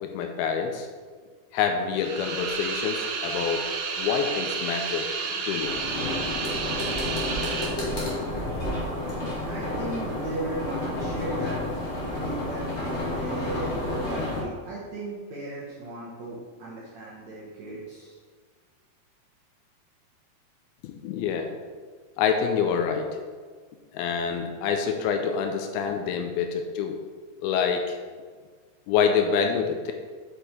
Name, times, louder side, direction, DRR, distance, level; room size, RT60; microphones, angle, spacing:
voice 1, 0.0-0.9 1.5-3.6 4.0-5.8 20.8-21.5 22.2-23.1 23.9-27.0 27.4-28.0 28.9-29.9, left 6 dB, 80° left, 5 dB, 2.4 m, -26 dB
sound 1, 2.0-7.7, right 5 dB, 85° right, 1.6 m, -31 dB
sound 2, 5.6-14.4, left 1 dB, 35° left, 1.1 m, -30 dB
voice 2, 9.4-10.6 10.9-11.6 12.2-18.2, right 2 dB, 65° right, -6 dB, 1.9 m, -36 dB
8.1 x 5.1 x 4.3 m, 1.5 s
omnidirectional pair, 4.5 m